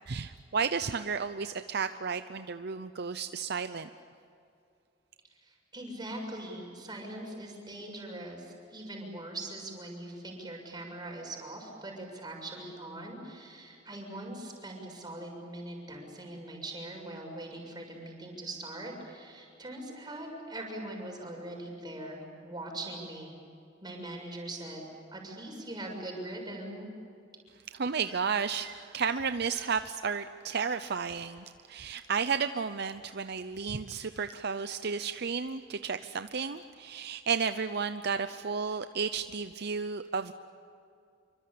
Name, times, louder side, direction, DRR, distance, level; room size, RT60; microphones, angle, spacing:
voice 1, 0.1-3.9 27.7-40.3, right 5 dB, 60° right, 10 dB, 0.7 m, -33 dB
voice 2, 5.4-23.4 23.8-24.9 25.1-26.9, right 1 dB, 25° right, 0 dB, 6.9 m, -41 dB
27.5 x 24.5 x 8.7 m, 2.5 s
head